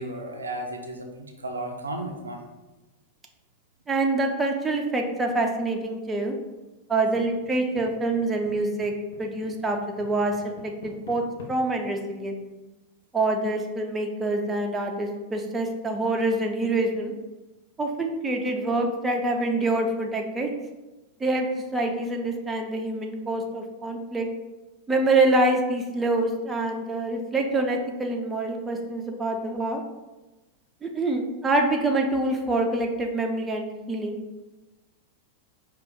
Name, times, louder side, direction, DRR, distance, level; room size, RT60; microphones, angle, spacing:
voice 1, 0.0-2.4 12.0-12.1, right 1 dB, 75° right, 3 dB, 0.5 m, -34 dB
voice 2, 3.9-6.3 6.9-8.9 9.2-10.3 10.8-11.2 11.5-12.4 13.1-17.1 17.8-20.5 21.2-21.5 21.7-24.3 24.9-29.8 30.8-34.2, right 2 dB, 15° right, 2 dB, 0.5 m, -26 dB
sound 1, 7.1-7.9 8.1-8.5 8.8-11.5, left 3 dB, 60° left, 0.8 m, -44 dB
4.9 x 2.4 x 3.6 m, 1.1 s
figure-of-eight pair, 90°, 0 cm